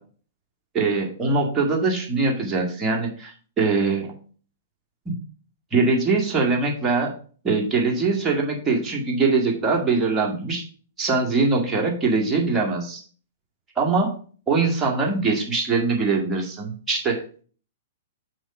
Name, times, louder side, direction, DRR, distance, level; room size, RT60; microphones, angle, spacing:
voice 1, 0.7-4.1 5.1-5.2 5.7-7.1 7.4-10.6 11.0-13.0 13.8-14.1 14.5-17.4, right 3 dB, 20° right, -1 dB, 2.0 m, -22 dB
6.2 x 4.7 x 5.4 m, 0.42 s
figure-of-eight pair, 110°, 0 cm